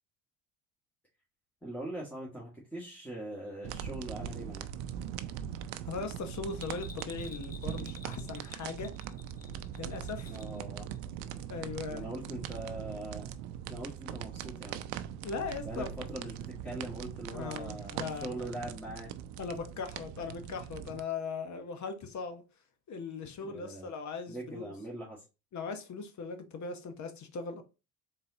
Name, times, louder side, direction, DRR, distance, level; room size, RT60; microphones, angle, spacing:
voice 1, 1.6-4.7 10.2-10.9 11.9-13.3 13.7-14.8 15.6-19.1 23.4-23.9 24.3-25.2, right 1 dB, 5° left, 1.7 m, -42 dB
sound 1, 3.6-21.0, right 9 dB, 80° right, 0.5 m, -41 dB
voice 2, 5.8-8.9 9.8-10.3 11.5-12.0 15.2-15.9 17.3-18.5 19.4-22.4 22.9-24.7 25.5-27.6, left 5 dB, 45° left, 1.0 m, -39 dB
Bell, 6.5-10.6 10.9-11.0, left 5 dB, 20° left, 0.8 m, -51 dB
4.0 x 3.9 x 2.8 m
supercardioid pair, 75°, 39 cm